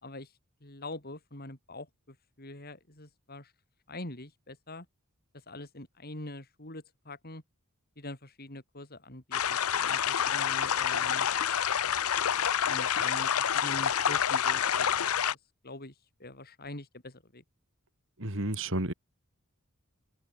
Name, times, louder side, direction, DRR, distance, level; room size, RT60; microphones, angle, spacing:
voice 1, 0.6-3.5 3.9-4.9 5.5-7.4 8.0-11.3 11.8-12.0 12.7-15.1 15.6-15.9 16.2-17.4, left 2 dB, 45° left, 5.1 m, -44 dB
sound 1, 9.3-15.3, left 8 dB, 80° left, 0.7 m, -28 dB
voice 2, 18.2-18.9, right 1 dB, 60° right, 4.7 m, -31 dB
head